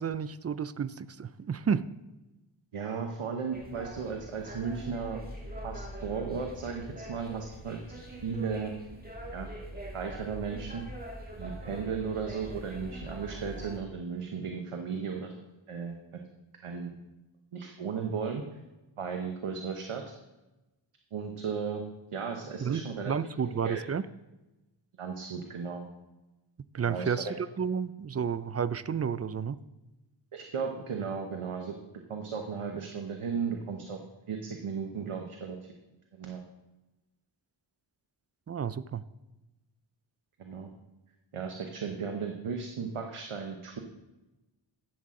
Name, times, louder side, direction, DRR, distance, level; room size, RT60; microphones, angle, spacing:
voice 1, 0.0-1.8 22.6-24.0 26.7-29.6 38.5-39.0, right 7 dB, 35° right, 16 dB, 0.4 m, -31 dB
voice 2, 2.7-5.2 5.6-7.8 8.2-8.7 9.3-9.5 9.9-10.8 11.4-15.3 15.7-16.0 16.6-16.9 17.5-18.4 19.0-20.0 21.1-21.8 22.1-23.1 23.5-23.8 25.0-25.8 26.9-27.3 30.3-31.7 32.1-34.0 34.3-35.6 36.2-36.4 40.4-40.7 41.3-43.8, right 6 dB, 85° right, 3 dB, 1.0 m, -35 dB
sound 1, 3.5-13.8, right 1 dB, 20° right, 2.0 m, -43 dB
12.0 x 7.5 x 3.7 m, 1.0 s
wide cardioid pair, 55°, 50 cm